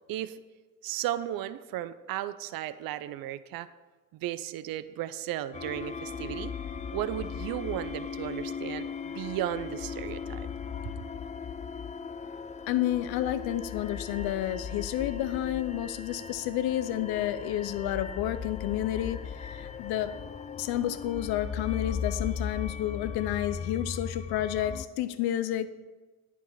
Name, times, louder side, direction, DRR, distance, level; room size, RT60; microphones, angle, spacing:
voice 1, 0.8-3.7 4.1-6.5 6.9-10.5, right 13 dB, 65° right, 14 dB, 0.5 m, -35 dB
sound 1, 5.5-24.8, left 6 dB, 20° left, 0.3 m, -38 dB
voice 2, 12.7-20.1 20.6-25.7, left 12 dB, 80° left, 13 dB, 0.6 m, -30 dB
9.2 x 4.7 x 5.5 m, 1.3 s
supercardioid pair, 60°, 37 cm